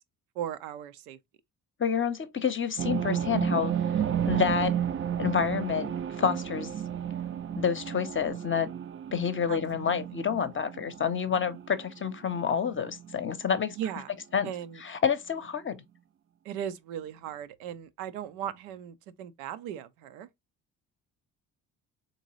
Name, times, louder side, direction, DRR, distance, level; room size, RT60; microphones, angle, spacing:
voice 1, 0.4-1.2 9.5-9.9 13.7-14.1 14.4-14.8 16.4-20.3, right 10 dB, 80° right, 0.5 m, -37 dB
voice 2, 1.8-3.7 4.3-4.8 5.2-6.7 7.5-8.7 9.1-13.8 14.3-14.5 14.8-15.8, left 7 dB, 30° left, 0.7 m, -28 dB
sound 1, 2.8-13.3 13.5-13.6 13.9-14.0, right 9 dB, 30° right, 0.4 m, -32 dB
3.8 x 2.7 x 3.0 m
hypercardioid pair, 50°, 43 cm